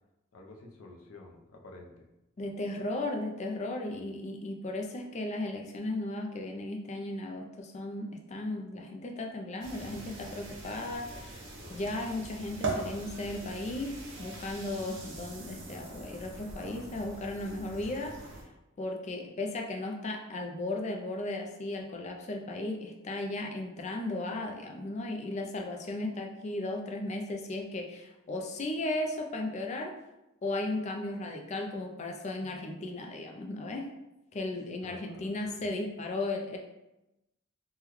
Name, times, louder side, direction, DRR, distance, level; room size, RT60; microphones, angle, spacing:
voice 1, 0.3-2.0 3.9-4.1 11.6-11.8 16.4-17.0 34.8-35.3 35.6-35.8, left 2 dB, 85° left, 2 dB, 0.5 m, -51 dB
voice 2, 2.4-11.4 11.7-18.1 18.8-29.9 30.4-33.9 34.3-36.6, left 2 dB, 35° left, 2 dB, 0.4 m, -35 dB
sound 1, 9.6-18.4, right 2 dB, 65° right, 0.7 m, -41 dB
3.6 x 2.2 x 3.0 m, 0.95 s
head